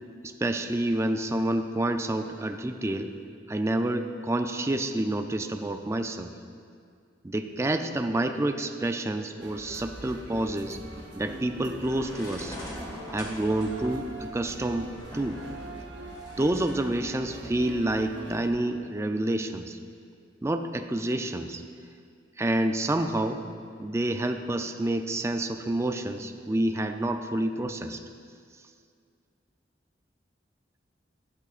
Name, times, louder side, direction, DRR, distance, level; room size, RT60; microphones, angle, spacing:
voice 1, 0.2-3.2 3.5-6.3 7.2-10.8 11.2-12.6 13.1-15.4 16.4-19.8 20.4-21.6 22.4-23.4 23.8-28.0, right 1 dB, 15° right, 7 dB, 0.4 m, -28 dB
sound 1, 9.4-18.5, right 1 dB, 70° right, 0.9 m, -42 dB
sound 2, 11.8-16.7, equal, 20° left, 1.7 m, -44 dB
12.0 x 10.5 x 2.5 m, 2.2 s
head